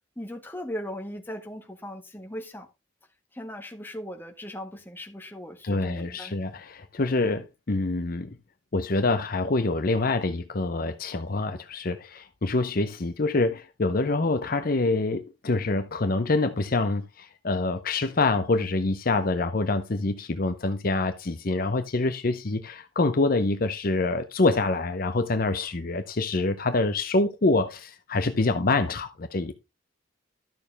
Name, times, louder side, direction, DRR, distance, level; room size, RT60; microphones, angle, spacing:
voice 1, 0.2-2.7 3.3-6.3, equal, 10° left, 1.4 m, -38 dB
voice 2, 5.6-8.4 8.7-29.5, left 3 dB, 50° left, 0.7 m, -26 dB
12.0 x 6.6 x 3.4 m
head